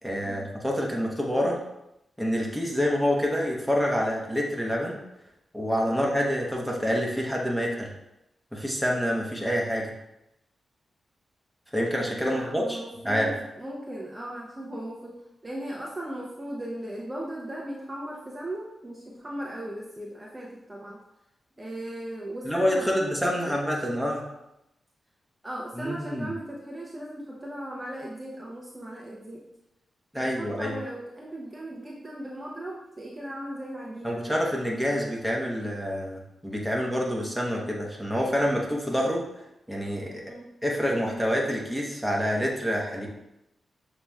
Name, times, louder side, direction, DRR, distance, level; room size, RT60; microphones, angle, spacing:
voice 1, 0.0-1.6 2.2-5.0 5.5-7.9 8.5-9.9 11.7-12.8 13.0-13.3 22.5-24.2 25.8-26.3 30.1-30.7 34.0-39.2 39.7-40.2 40.6-43.1, equal, ahead, -2 dB, 1.1 m, -27 dB
voice 2, 12.1-21.0 21.6-23.6 25.4-29.4 30.2-34.3 40.2-40.5, right 1 dB, 20° right, -4 dB, 0.8 m, -37 dB
6.8 x 3.0 x 2.3 m, 0.88 s
cardioid pair, 60°, 0 cm